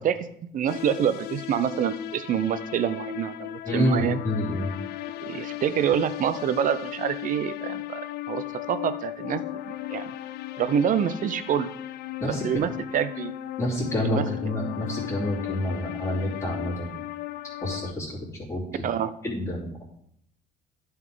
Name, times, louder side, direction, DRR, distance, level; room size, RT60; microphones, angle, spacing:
voice 1, 0.5-4.2 5.2-8.0 8.3-10.1 10.6-11.7 12.3-13.3 14.0-14.2 18.8-19.1, right 9 dB, 50° right, 13 dB, 0.6 m, -26 dB
sound 1, 0.7-17.9, left 14 dB, 75° left, 0.5 m, -36 dB
voice 2, 3.6-4.7 12.2-12.4 13.6-16.9 17.6-18.2 18.5-18.6 19.2-19.8, left 1 dB, 15° left, -11 dB, 2.9 m, -28 dB
11.0 x 5.7 x 3.7 m, 0.71 s
cardioid pair, 110°, 17 cm